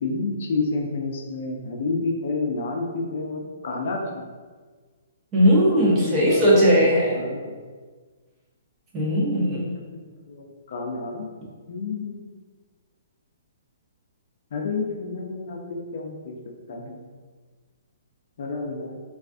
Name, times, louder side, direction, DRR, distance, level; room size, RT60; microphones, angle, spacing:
voice 1, 0.0-4.2 5.6-6.9 7.1-7.6 9.7-11.3 11.7-12.3 14.5-16.3 16.7-17.0 18.4-19.0, left 3 dB, 55° left, 1 dB, 0.4 m, -30 dB
voice 2, 5.3-7.2 8.9-9.7, equal, 15° right, -6 dB, 0.6 m, -18 dB
3.2 x 2.4 x 2.4 m, 1.5 s
hypercardioid pair, 165°, 0 cm